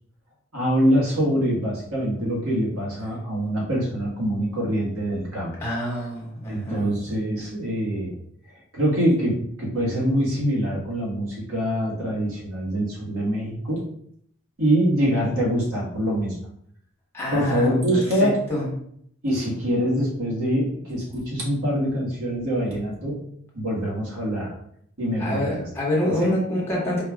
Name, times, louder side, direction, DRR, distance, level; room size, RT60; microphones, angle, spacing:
voice 1, 0.5-5.5 6.5-8.1 8.7-13.8 14.6-16.4 17.3-18.4 19.2-23.2 23.5-24.5 25.0-25.5 26.0-26.3, equal, 85° right, -4 dB, 1.6 m, -24 dB
voice 2, 5.6-6.8 17.1-17.8 18.2-18.6 25.2-27.0, left 1 dB, 10° left, -5 dB, 1.2 m, -26 dB
4.5 x 2.4 x 3.5 m, 0.68 s
head